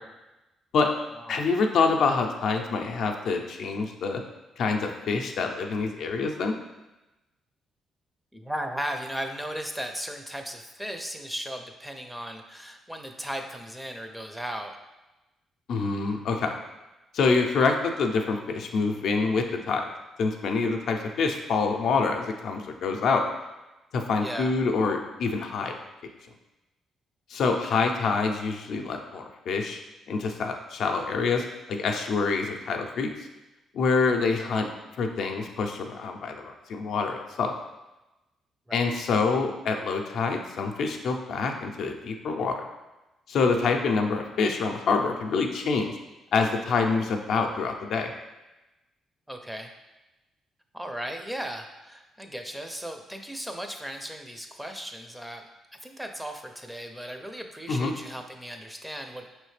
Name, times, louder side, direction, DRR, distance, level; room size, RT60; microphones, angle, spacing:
voice 1, 1.3-4.2 4.6-6.5 15.7-16.6 17.1-19.9 20.2-23.2 23.9-25.7 27.3-29.8 30.1-33.1 33.7-34.7 35.0-37.5 38.7-42.7 43.3-46.0 46.3-48.1 57.7-57.9, left 4 dB, 70° left, 3 dB, 0.5 m, -26 dB
voice 2, 8.3-14.7 24.2-24.5 27.7-27.8 38.7-38.8 44.1-44.2 49.3-49.7 50.7-55.4 55.8-59.3, equal, 5° right, 4 dB, 0.5 m, -36 dB
4.9 x 3.2 x 3.2 m, 1.0 s
cardioid pair, 90°, 0 cm